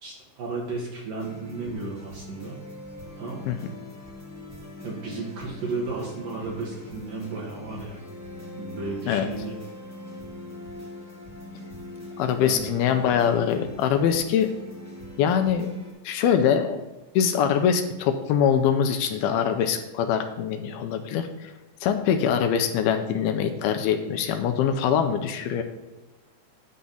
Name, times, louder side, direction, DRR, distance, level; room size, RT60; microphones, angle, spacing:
voice 1, 0.0-2.6 3.2-3.4 4.8-8.0 8.6-9.6 12.4-12.6, right 3 dB, 60° right, -3 dB, 2.9 m, -34 dB
sound 1, 1.2-15.9, left 1 dB, 5° right, 1.2 m, -42 dB
voice 2, 12.2-14.5 15.2-15.7 16.0-16.8 17.2-21.5 21.8-25.6, left 8 dB, 80° left, 6 dB, 2.4 m, -23 dB
9.7 x 3.9 x 7.1 m, 1.1 s
omnidirectional pair, 4.9 m